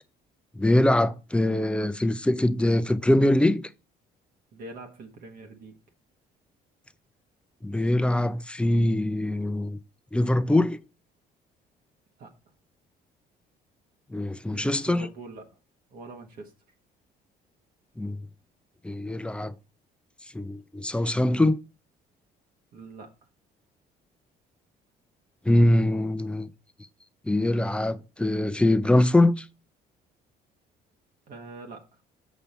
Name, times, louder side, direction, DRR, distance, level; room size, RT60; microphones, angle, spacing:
voice 1, 0.6-3.6 7.6-9.8 10.1-10.8 14.1-15.1 18.0-18.2 18.8-19.5 20.3-21.6 25.4-26.5 27.3-29.5, left 1 dB, 5° left, 0.5 m, -23 dB
voice 2, 4.5-5.7 12.2-12.3 14.5-15.5 15.9-16.5 22.7-23.1 31.3-31.9, right 2 dB, 60° right, 1.5 m, -43 dB
7.2 x 5.4 x 4.2 m
cardioid pair, 110°, 17 cm